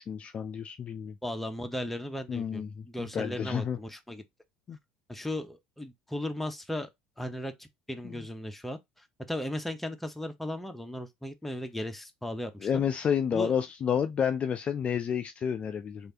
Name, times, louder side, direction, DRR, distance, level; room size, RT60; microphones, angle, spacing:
voice 1, 0.0-1.2 2.3-3.8 4.7-4.8 8.0-8.2 12.6-16.1, left 8 dB, 35° left, 0.3 m, -30 dB
voice 2, 1.2-4.2 5.1-6.9 7.2-12.8 13.3-13.5, left 1 dB, 5° left, 0.6 m, -36 dB
3.2 x 2.4 x 2.8 m
hypercardioid pair, 65°, 4 cm